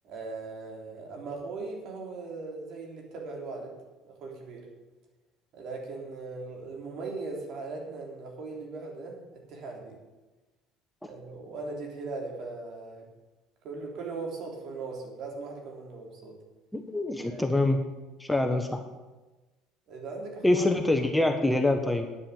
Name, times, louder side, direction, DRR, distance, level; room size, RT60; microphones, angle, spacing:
voice 1, 0.0-3.7 4.0-4.7 5.5-10.0 11.0-13.1 13.6-16.4 17.2-17.6 19.9-20.6 21.2-21.4, right 3 dB, 60° right, 0 dB, 3.6 m, -39 dB
voice 2, 16.7-17.8 18.2-18.8 20.4-22.1, left 2 dB, 5° left, 5 dB, 1.2 m, -25 dB
9.3 x 8.8 x 7.1 m, 1.2 s
hypercardioid pair, 80°, 0 cm